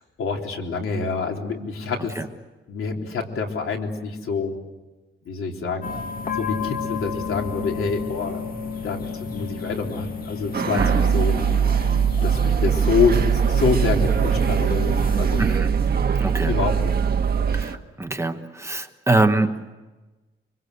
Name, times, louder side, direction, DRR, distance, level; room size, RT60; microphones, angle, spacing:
voice 1, 0.2-2.1 2.7-4.6 5.3-5.9 6.4-8.4 8.8-9.1 9.3-11.4 12.2-13.2 13.5-15.5 16.5-16.9, left 5 dB, 90° left, 2 dB, 3.7 m, -26 dB
sound 1, 5.8-15.6, left 5 dB, 45° left, 2.1 m, -32 dB
sound 2, 10.5-17.8, right 6 dB, 50° right, 1.5 m, -29 dB
voice 2, 10.7-11.1 15.4-15.8 16.2-16.6 17.5-19.6, right 2 dB, 15° right, 6 dB, 1.2 m, -24 dB
sound 3, 10.8-17.6, right 7 dB, 80° right, 1.5 m, -21 dB
25.5 x 25.0 x 8.2 m, 1.2 s
wide cardioid pair, 175°, 21 cm